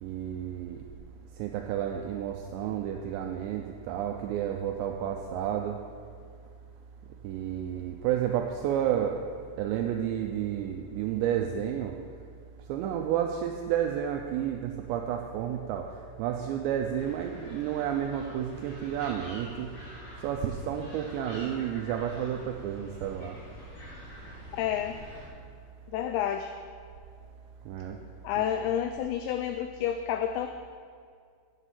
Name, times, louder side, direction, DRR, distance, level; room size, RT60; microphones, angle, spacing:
voice 1, 0.0-0.8 1.4-5.8 7.2-9.2 9.6-12.0 12.7-15.9 16.2-19.7 20.2-23.4 27.7-28.0, right 10 dB, 85° right, 3 dB, 2.6 m, -31 dB
sound 1, 16.9-25.3, equal, 65° left, 4.8 m, -47 dB
voice 2, 24.5-25.0 25.9-26.5 28.2-30.5, left 10 dB, 90° left, 7 dB, 2.5 m, -29 dB
7.9 x 7.6 x 8.2 m, 2.1 s
omnidirectional pair, 5.6 m